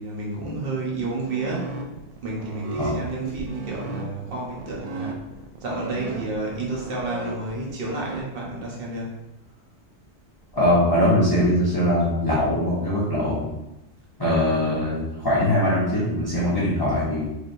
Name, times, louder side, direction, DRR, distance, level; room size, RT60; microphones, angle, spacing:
voice 1, 0.0-1.7 2.2-5.2 5.6-9.1, right 2 dB, 55° right, -3 dB, 1.2 m, -30 dB
sound 1, 1.2-8.2, right 3 dB, 75° right, 0.3 m, -35 dB
voice 2, 10.5-13.5 14.2-17.2, left 1 dB, 20° left, -9 dB, 0.9 m, -21 dB
4.4 x 3.3 x 2.6 m, 0.92 s
omnidirectional pair, 1.2 m